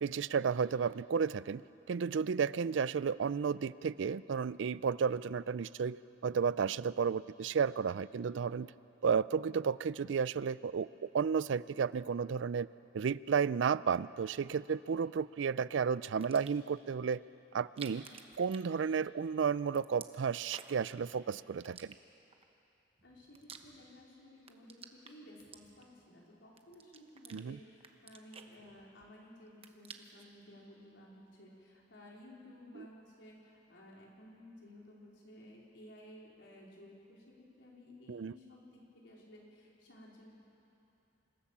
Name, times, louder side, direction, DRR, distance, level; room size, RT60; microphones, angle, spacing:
voice 1, 0.0-1.6 1.9-6.0 6.2-8.7 9.0-12.7 12.9-17.2 17.5-18.1 18.4-21.9 27.3-27.6 32.8-32.9 38.1-38.3, right 6 dB, 80° right, 18 dB, 0.4 m, -32 dB
sound 1, 16.2-16.7 17.6-19.3 19.5-20.9 21.6-22.4 23.0-24.1 24.4-26.1 26.6-27.4 27.8-29.1 29.4-30.3, right 6 dB, 30° right, 1.0 m, -52 dB
voice 2, 23.0-40.3, left 1 dB, 80° left, -3 dB, 4.4 m, -56 dB
26.0 x 16.0 x 7.3 m, 2.8 s
head